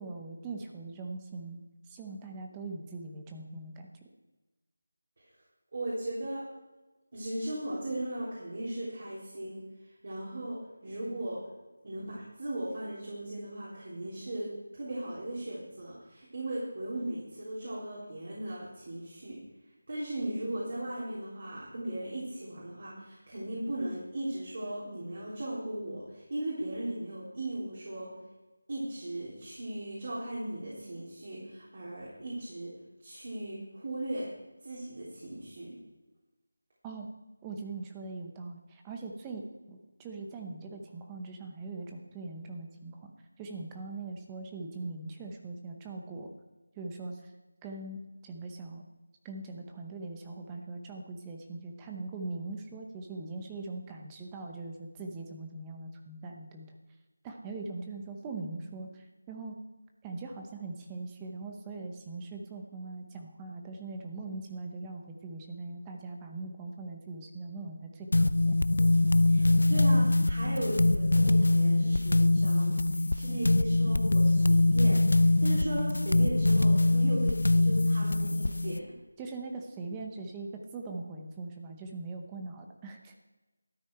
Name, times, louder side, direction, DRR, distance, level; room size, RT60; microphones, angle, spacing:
voice 1, 0.0-1.6 1.9-3.9 36.8-37.1 37.4-43.1 43.4-46.3 46.8-47.2 47.6-48.8 49.2-56.8 57.2-59.6 60.0-68.5 79.2-83.1, right 3 dB, 10° right, 2 dB, 0.7 m, -41 dB
voice 2, 5.7-6.5 7.1-9.7 10.0-11.4 11.8-19.4 19.9-28.2 28.7-32.7 33.0-34.3 34.6-35.8 69.3-78.9, right 1 dB, 45° right, -6 dB, 3.6 m, -37 dB
sound 1, 68.1-78.8, left 2 dB, 80° left, 0.5 m, -24 dB
12.5 x 9.2 x 4.6 m, 1.1 s
figure-of-eight pair, 175°, 0 cm